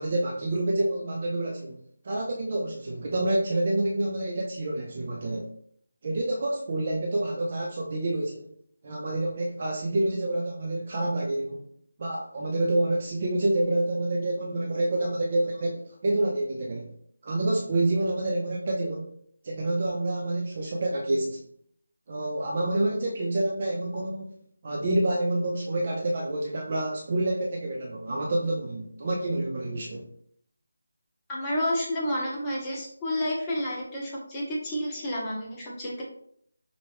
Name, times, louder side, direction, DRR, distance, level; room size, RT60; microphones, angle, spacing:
voice 1, 0.0-1.8 2.0-5.5 6.0-8.5 8.8-11.6 12.0-16.9 17.2-19.1 19.4-21.4 22.1-24.3 24.6-30.0, right 1 dB, 35° right, -1 dB, 0.6 m, -28 dB
voice 2, 31.3-36.0, left 1 dB, 15° left, -5 dB, 0.9 m, -30 dB
5.4 x 2.5 x 3.3 m, 0.65 s
figure-of-eight pair, 160°, 0 cm